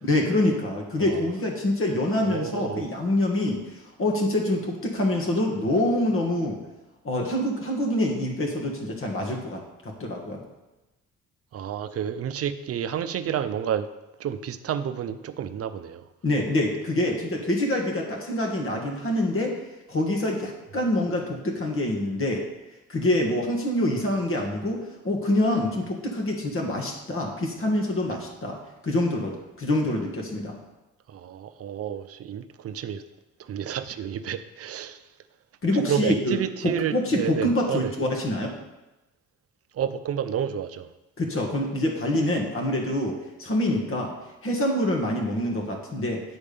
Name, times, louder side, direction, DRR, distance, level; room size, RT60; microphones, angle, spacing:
voice 1, 0.0-6.6 7.0-10.4 16.2-19.5 19.9-22.4 22.9-28.6 28.8-30.5 35.6-38.5 41.2-44.1 44.4-46.2, left 1 dB, 45° left, 1 dB, 1.6 m, -26 dB
voice 2, 2.2-2.9 11.5-13.9 14.2-16.0 31.1-33.0 33.5-35.0 35.8-37.9 39.7-40.9, right 9 dB, 50° right, 11 dB, 0.6 m, -30 dB
8.8 x 3.6 x 6.8 m, 1.0 s
cardioid pair, 90°, 30 cm